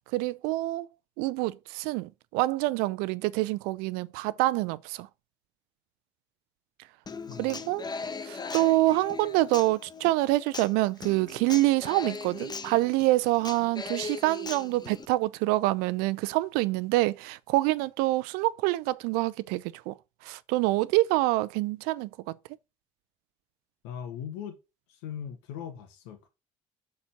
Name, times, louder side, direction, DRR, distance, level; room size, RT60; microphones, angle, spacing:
voice 1, 0.1-0.9 1.2-5.1 7.4-7.8 8.2-19.9 20.2-22.1, right 19 dB, 75° right, 0.5 m, -26 dB
Human voice / Acoustic guitar, 7.1-15.0, left 4 dB, 25° left, 1.0 m, -39 dB
voice 2, 7.3-7.6 23.8-24.6 24.9-26.3, left 8 dB, 80° left, 1.7 m, -39 dB
6.9 x 4.3 x 5.8 m
hypercardioid pair, 65°, 16 cm